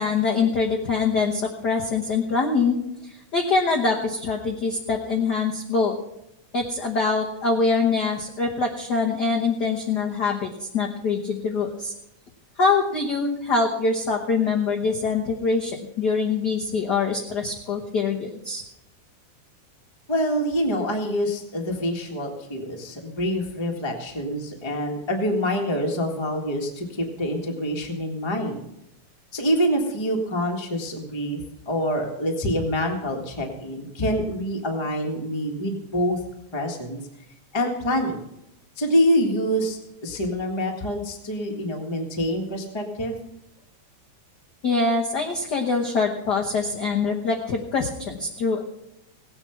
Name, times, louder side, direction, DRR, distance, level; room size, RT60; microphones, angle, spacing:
voice 1, 0.0-2.8 3.0-6.0 6.5-11.9 12.6-18.6 44.6-48.6, left 4 dB, 65° left, 1 dB, 1.0 m, -24 dB
voice 2, 20.1-28.6 29.3-31.4 31.6-36.2 36.5-37.0 37.5-38.2 38.8-43.3, equal, 15° left, 1 dB, 0.9 m, -26 dB
17.5 x 8.8 x 5.9 m, 0.85 s
omnidirectional pair, 3.5 m